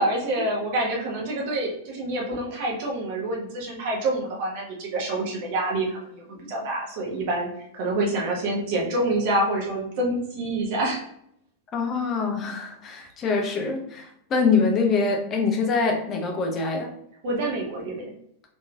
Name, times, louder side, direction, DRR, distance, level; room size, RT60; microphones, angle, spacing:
voice 1, 0.0-11.0 17.2-18.1, right 1 dB, 50° right, -2 dB, 1.1 m, -27 dB
voice 2, 11.7-16.9, left 4 dB, 30° left, 3 dB, 0.8 m, -24 dB
3.9 x 3.1 x 2.4 m, 0.72 s
figure-of-eight pair, 90°, 0 cm